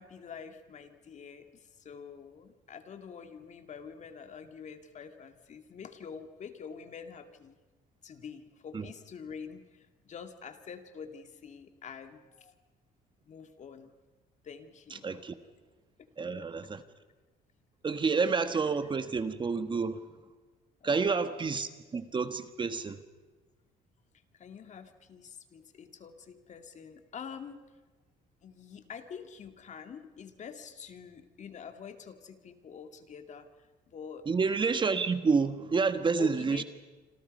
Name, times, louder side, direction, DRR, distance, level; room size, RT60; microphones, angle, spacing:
voice 1, 0.0-7.6 8.0-12.5 13.3-13.9 14.4-15.1 16.0-16.1 20.8-21.3 24.3-27.6 28.4-34.3 36.2-36.6, left 6 dB, 45° left, 2.2 m, -46 dB
voice 2, 14.9-15.3 16.2-16.8 17.8-20.0 20.8-23.0 34.2-36.6, right 4 dB, 30° right, 1.4 m, -29 dB
28.0 x 26.5 x 5.4 m
cardioid pair, 110°, 17 cm